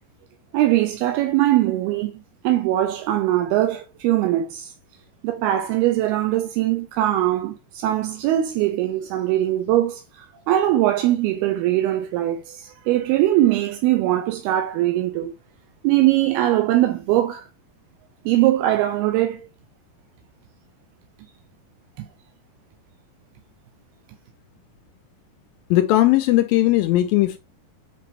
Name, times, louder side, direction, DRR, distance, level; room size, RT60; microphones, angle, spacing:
voice 1, 0.5-2.1 2.4-4.7 5.2-15.3 15.8-17.5 18.3-19.4 22.0-22.1, right 14 dB, 80° right, 2.5 m, -21 dB
voice 2, 25.7-27.4, left 15 dB, 85° left, 2.0 m, -18 dB
7.8 x 5.9 x 3.2 m
omnidirectional pair, 4.8 m